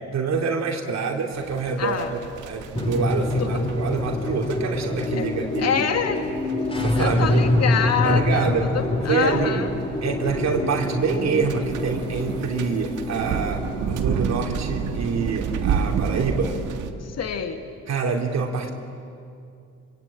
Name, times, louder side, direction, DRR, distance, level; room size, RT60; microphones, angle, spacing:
voice 1, 0.1-2.2 2.5-5.7 6.7-7.5 8.0-8.7 9.1-9.7 10.0-16.5 17.9-18.7, right 5 dB, 60° right, 1 dB, 3.0 m, -26 dB
sound 1, 1.3-16.9, right 6 dB, 85° right, 1.8 m, -32 dB
voice 2, 1.8-2.1 3.4-3.7 5.1-5.3 5.6-6.2 6.7-8.5 8.7-9.7 17.0-17.6, left 7 dB, 55° left, 5 dB, 2.0 m, -26 dB
sound 2, 2.7-17.4, left 1 dB, 20° left, 2.6 m, -27 dB
25.5 x 25.0 x 8.9 m, 2.5 s
cardioid pair, 90°, 30 cm